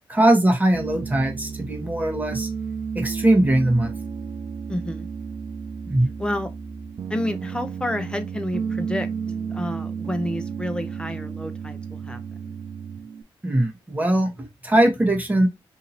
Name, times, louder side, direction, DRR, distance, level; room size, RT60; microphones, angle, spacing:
voice 1, 0.1-2.5 2.9-3.9 5.9-6.1 13.4-15.5, right 1 dB, 15° right, 1.2 m, -20 dB
Piano, 0.7-13.2, right 6 dB, 55° right, 0.4 m, -32 dB
voice 2, 4.7-5.1 6.2-6.5 7.1-9.1 9.5-12.2 12.5-12.6, left 1 dB, 10° left, 0.8 m, -29 dB
2.8 x 2.7 x 4.1 m
cardioid pair, 65°, 9 cm